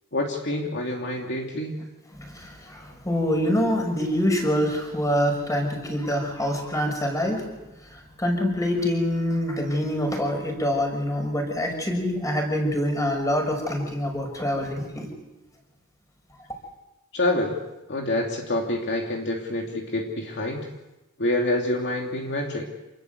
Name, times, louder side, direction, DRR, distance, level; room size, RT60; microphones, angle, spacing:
voice 1, 0.1-1.8 17.1-17.6 17.9-20.7 21.2-22.7, left 1 dB, 50° left, 0 dB, 3.0 m, -27 dB
voice 2, 2.1-7.4 7.8-15.1, equal, 15° left, 3 dB, 6.1 m, -25 dB
28.0 x 20.5 x 8.2 m, 1.0 s
head